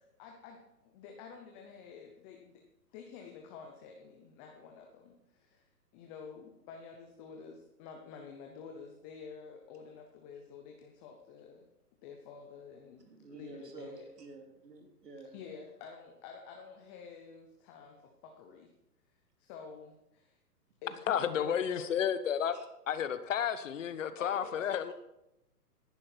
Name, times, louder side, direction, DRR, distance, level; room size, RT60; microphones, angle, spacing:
voice 1, 0.2-2.6 2.9-11.7 12.0-14.1 15.3-18.7 19.4-20.4 20.8-22.0 24.2-24.9, left 6 dB, 15° left, 0.7 m, -49 dB
voice 2, 13.0-15.4 22.5-22.6, right 3 dB, 80° right, 3.1 m, -50 dB
voice 3, 21.1-22.5 22.9-24.9, left 8 dB, 50° left, 1.1 m, -31 dB
15.0 x 11.0 x 4.4 m
hypercardioid pair, 140°, 48 cm